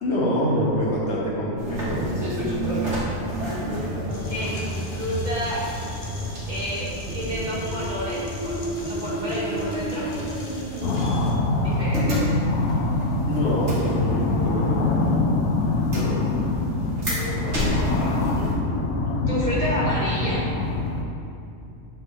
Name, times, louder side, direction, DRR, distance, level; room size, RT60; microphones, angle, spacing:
voice 1, 0.0-2.5 13.2-15.0 16.0-16.5 18.2-18.8, equal, 70° left, -6 dB, 1.7 m, -26 dB
sound 1, 1.6-18.5, equal, 85° right, 1.9 m, -30 dB
sound 2, 4.1-11.3, left 2 dB, 50° left, 1.2 m, -44 dB
voice 2, 4.1-5.7 6.5-10.0 11.6-12.3 16.8-18.2 19.3-20.4, equal, 40° right, -9 dB, 1.9 m, -30 dB
sound 3, 10.8-21.0, left 2 dB, 90° left, 1.0 m, -24 dB
8.1 x 4.6 x 3.5 m, 2.6 s
omnidirectional pair, 1.2 m